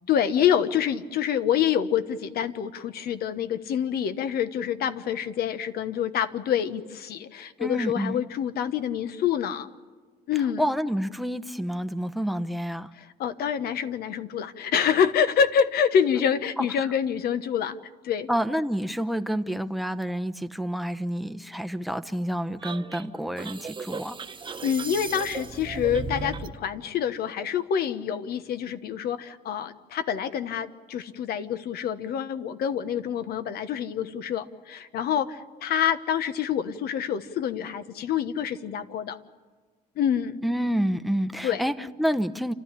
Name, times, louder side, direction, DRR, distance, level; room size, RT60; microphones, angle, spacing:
voice 1, 0.1-9.7 10.3-10.6 13.0-17.8 18.0-18.3 24.6-39.2 40.0-40.4 41.4-41.6, left 8 dB, 65° left, 11 dB, 1.2 m, -27 dB
voice 2, 7.6-8.2 10.6-12.9 18.3-24.2 40.4-42.5, equal, ahead, 8 dB, 0.9 m, -28 dB
sound 1, 22.6-26.6, right 4 dB, 30° right, 1.2 m, -36 dB
28.5 x 13.5 x 10.0 m, 1.4 s
cardioid pair, 110°, 17 cm